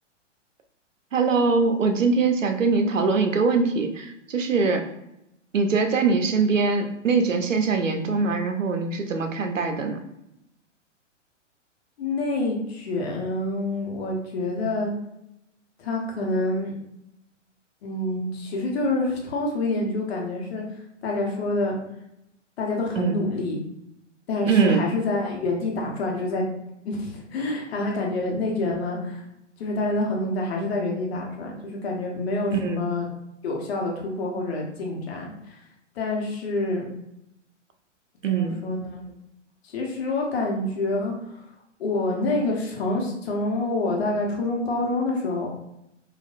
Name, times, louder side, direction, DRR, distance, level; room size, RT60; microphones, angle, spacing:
voice 1, 1.1-4.8 5.5-10.0 23.0-23.2 24.5-24.9 32.5-32.9 38.2-38.6, right 4 dB, 85° right, 6 dB, 0.7 m, -22 dB
voice 2, 12.0-14.9 15.8-16.7 17.8-20.6 21.0-21.8 22.6-23.6 24.3-26.4 26.8-29.2 29.6-33.1 33.4-35.6 35.9-36.9 38.3-39.1 39.6-41.4 41.8-45.5, left 2 dB, 55° left, -1 dB, 1.1 m, -27 dB
4.1 x 2.6 x 2.5 m, 0.84 s
figure-of-eight pair, 120°, 37 cm